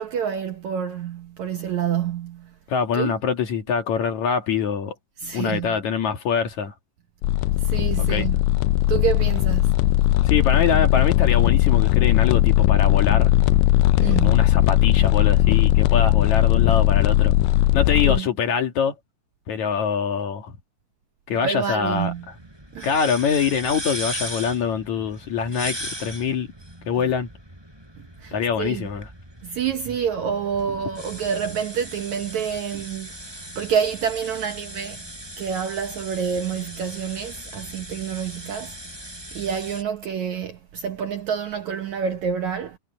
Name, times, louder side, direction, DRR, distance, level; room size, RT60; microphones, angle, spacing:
voice 1, 0.0-2.5 2.9-3.2 5.2-5.8 7.6-8.4 8.9-9.8 14.0-14.4 18.0-18.3 21.4-22.3 22.7-22.9 28.2-28.9 29.4-35.1 35.4-38.8 39.3-42.8, right 7 dB, 65° right, 2.0 m, -28 dB
voice 2, 2.7-4.9 5.3-6.7 8.0-8.3 10.3-13.3 14.2-17.3 17.7-18.9 19.5-20.6 21.3-22.1 22.8-26.5 26.9-27.3 28.3-29.1, left 6 dB, 55° left, 2.7 m, -24 dB
sound 1, 7.2-18.2, left 16 dB, 80° left, 2.5 m, -18 dB
sound 2, 21.8-39.8, equal, 5° right, 7.4 m, -38 dB
omnidirectional pair, 4.4 m